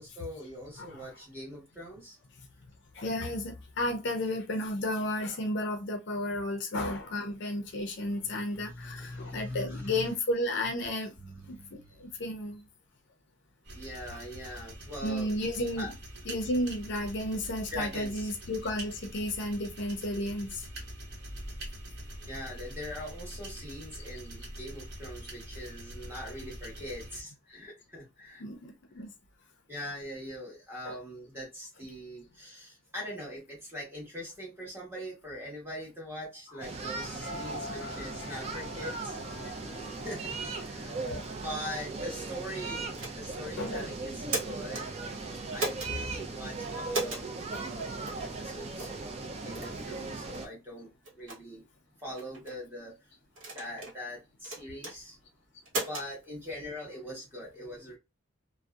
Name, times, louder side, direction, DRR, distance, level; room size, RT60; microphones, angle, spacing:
voice 1, 0.0-2.2 8.0-10.1 11.2-12.1 13.7-15.3 15.8-15.9 17.7-18.3 22.3-28.4 29.7-39.2 40.0-41.0 41.4-45.0 45.5-50.9 51.1-51.6 52.0-53.1 53.5-55.2 55.9-58.0, equal, 10° right, 1.1 m, -42 dB
voice 2, 2.9-11.1 11.5-12.6 15.0-15.9 16.3-20.6 28.4-29.1 30.8-31.0 36.9-40.1 40.9-41.3 43.6-43.9, left 1 dB, 60° left, 0.5 m, -33 dB
sound 1, 13.6-27.2, equal, 55° right, 1.0 m, -44 dB
sound 2, 36.6-50.5, right 3 dB, 30° right, 0.4 m, -38 dB
sound 3, 42.9-43.4 44.1-44.8 45.6-45.9 46.9-47.3 48.1-48.2 48.8-49.0 49.5-49.7 50.3-50.5 51.0-51.4 52.2-52.6 53.4-54.0 54.4-54.9 55.7-56.1, right 2 dB, 75° right, 1.0 m, -35 dB
2.6 x 2.1 x 2.3 m
head